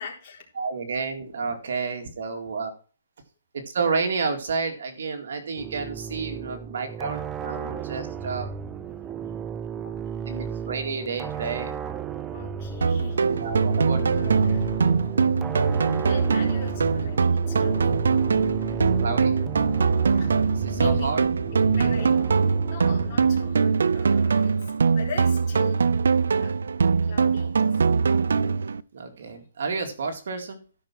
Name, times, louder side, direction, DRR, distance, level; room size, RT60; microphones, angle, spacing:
voice 1, 0.0-0.4 2.3-2.4 6.6-6.7 9.8-9.9 12.3-13.5 14.0-14.7 16.0-17.9 20.1-20.3 20.7-21.1 21.5-26.0 26.4-26.5 27.0-27.8, left 5 dB, 30° left, -3 dB, 3.9 m, -41 dB
voice 2, 0.6-2.7 3.5-8.5 10.3-11.8 12.4-12.5 13.4-14.0 18.6-19.3 20.5-21.2 21.8-21.9 28.9-30.6, right 4 dB, 60° right, 5 dB, 2.1 m, -30 dB
sound 1, 5.6-23.6, right 7 dB, 10° right, 0.4 m, -35 dB
sound 2, 12.8-28.8, right 5 dB, 80° right, 0.5 m, -22 dB
12.5 x 5.8 x 6.0 m, 0.37 s
hypercardioid pair, 165°, 0 cm